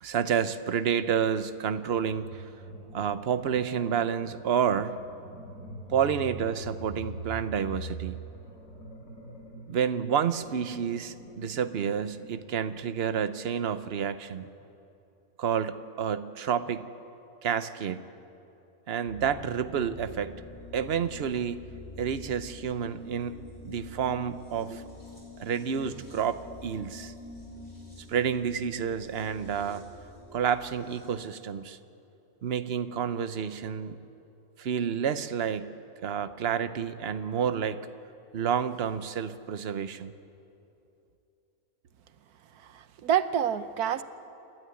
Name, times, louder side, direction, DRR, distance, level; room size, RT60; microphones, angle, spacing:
voice 1, 0.0-2.4 2.9-5.0 5.9-8.2 9.7-14.5 15.4-16.9 17.4-18.0 18.9-20.4 20.7-21.6 22.0-23.4 23.6-24.8 25.4-27.1 28.1-29.8 30.3-31.8 32.4-34.0 34.6-35.7 36.0-37.9 38.3-40.1, right 8 dB, 50° right, 12 dB, 0.9 m, -29 dB
sound 1, 1.9-12.4, right 2 dB, 70° left, 5.6 m, -44 dB
sound 2, 19.0-31.1, left 2 dB, 30° left, 6.7 m, -46 dB
voice 2, 42.7-44.0, right 9 dB, 85° right, 12 dB, 1.3 m, -27 dB
27.5 x 12.5 x 9.8 m, 2.7 s
omnidirectional pair, 1.6 m